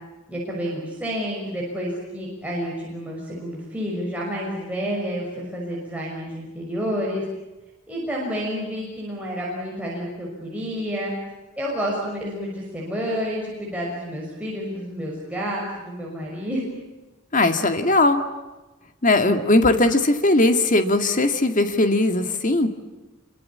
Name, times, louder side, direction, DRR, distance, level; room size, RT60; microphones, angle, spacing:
voice 1, 0.3-7.2 7.9-11.1 11.6-16.6, equal, 5° right, -4 dB, 6.1 m, -29 dB
voice 2, 17.3-18.2 19.0-22.7, left 2 dB, 40° left, 7 dB, 2.1 m, -19 dB
26.5 x 24.0 x 8.7 m, 1.1 s
head